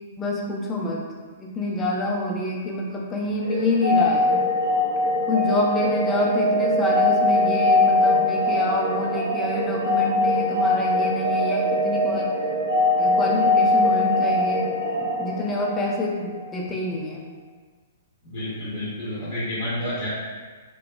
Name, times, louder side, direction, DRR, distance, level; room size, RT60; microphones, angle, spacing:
voice 1, 0.2-1.1 1.4-4.4 5.3-12.3 13.0-14.7 15.2-17.2, left 1 dB, 15° left, -2 dB, 0.4 m, -27 dB
sound 1, 3.4-16.2, left 2 dB, 85° right, 0.9 m, -22 dB
voice 2, 18.2-20.1, left 1 dB, 50° left, -9 dB, 0.8 m, -30 dB
2.9 x 2.0 x 2.3 m, 1.5 s
figure-of-eight pair, 110°, 0 cm